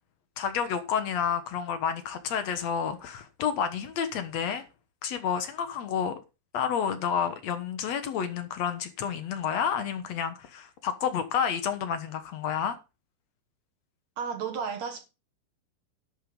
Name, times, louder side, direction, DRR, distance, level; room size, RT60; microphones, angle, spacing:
voice 1, 0.4-4.6 5.0-6.2 6.5-12.8, left 7 dB, 70° left, 1.6 m, -30 dB
voice 2, 14.2-15.1, right 6 dB, 60° right, 1.9 m, -33 dB
12.0 x 6.5 x 5.4 m
omnidirectional pair, 4.9 m